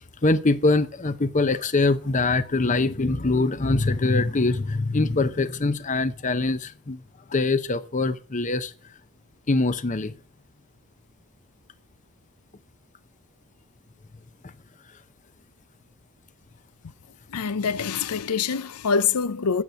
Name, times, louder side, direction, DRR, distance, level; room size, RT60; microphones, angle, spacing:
voice 1, 0.2-7.0 7.3-8.7 9.5-10.1, left 3 dB, 35° left, 0.7 m, -23 dB
voice 2, 17.3-19.6, left 6 dB, 85° left, 0.6 m, -25 dB
9.4 x 7.7 x 8.0 m
head